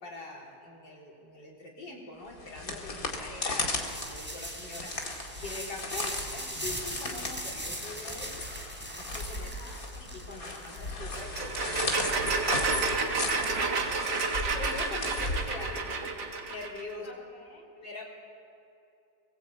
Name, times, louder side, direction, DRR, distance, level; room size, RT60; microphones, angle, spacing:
voice 1, 0.0-5.1 5.4-8.6 9.0-9.5 9.9-13.2 14.5-17.1 17.8-18.0, left 2 dB, 80° left, -3 dB, 4.6 m, -43 dB
sound 1, 2.3-16.0, left 2 dB, 50° left, 2.6 m, -36 dB
sound 2, 3.6-13.5, equal, 5° right, 3.4 m, -40 dB
voice 2, 9.4-9.8 12.9-14.2 17.0-17.7, left 2 dB, 35° left, 1 dB, 3.7 m, -51 dB
sound 3, 11.1-16.8, right 4 dB, 65° right, 2.2 m, -30 dB
23.0 x 20.5 x 8.3 m, 2.7 s
omnidirectional pair, 1.9 m